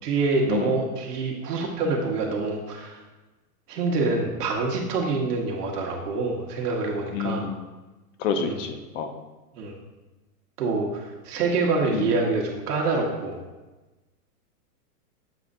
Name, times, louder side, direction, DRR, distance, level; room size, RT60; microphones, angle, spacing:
voice 1, 0.0-3.0 3.7-7.5 8.4-8.6 9.5-9.8 10.6-13.4, right 3 dB, 70° right, 0 dB, 1.4 m, -26 dB
voice 2, 7.1-7.6 8.2-9.1 11.9-12.1, left 6 dB, 50° left, 6 dB, 0.7 m, -28 dB
7.4 x 2.5 x 5.3 m, 1.1 s
hypercardioid pair, 150°, 48 cm